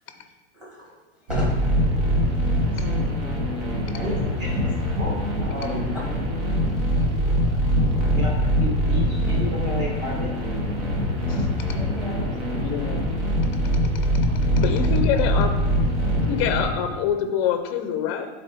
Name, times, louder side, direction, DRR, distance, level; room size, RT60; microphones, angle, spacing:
voice 1, 0.5-0.9 1.3-1.5 2.7-3.1 6.8-7.1 11.4-12.3, left 1 dB, 5° right, -4 dB, 1.3 m, -38 dB
sound 1, 1.3-16.6, equal, 70° right, 1.8 m, -23 dB
voice 2, 3.9-4.7 5.0-5.9 8.1-10.3 14.2-15.2 16.0-16.2, equal, 30° right, -3 dB, 1.2 m, -34 dB
voice 3, 12.6-13.1 14.6-15.6 16.3-18.3, left 8 dB, 30° left, 7 dB, 0.5 m, -25 dB
8.8 x 3.9 x 3.4 m, 1.2 s
supercardioid pair, 175°, 33 cm